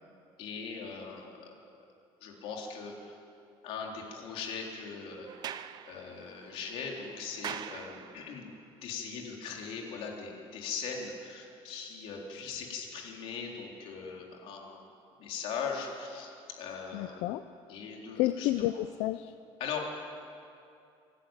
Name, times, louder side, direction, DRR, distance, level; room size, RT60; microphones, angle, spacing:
voice 1, 0.4-1.5 2.2-3.2 3.6-8.5 8.8-14.8 15.2-16.3 16.6-17.2 17.7-18.5 19.6-19.8, left 5 dB, 65° left, 0 dB, 3.7 m, -40 dB
Sliding door, 5.2-8.5, right 10 dB, 40° right, 0.6 m, -44 dB
voice 2, 16.9-17.5 18.2-19.3, left 15 dB, 90° left, 11 dB, 0.6 m, -30 dB
27.0 x 11.5 x 9.0 m, 2.6 s
cardioid pair, 165°, 10 cm